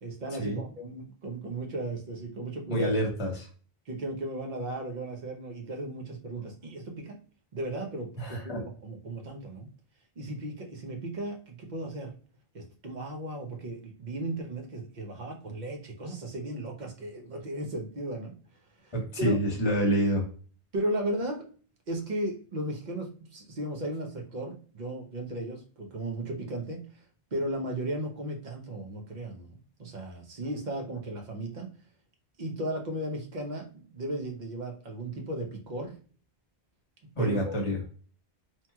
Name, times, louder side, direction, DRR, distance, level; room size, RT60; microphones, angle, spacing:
voice 1, 0.0-2.9 3.9-7.2 7.5-9.7 10.2-12.1 12.5-18.4 18.8-19.4 20.7-21.5 21.9-27.0 27.3-31.7 32.4-36.0 37.2-37.5, right 1 dB, 50° right, 2 dB, 0.9 m, -35 dB
voice 2, 2.7-3.5 8.2-8.6 18.9-20.3 37.2-37.8, right 1 dB, 30° left, 0 dB, 1.0 m, -27 dB
3.0 x 2.8 x 2.2 m, 0.41 s
omnidirectional pair, 1.0 m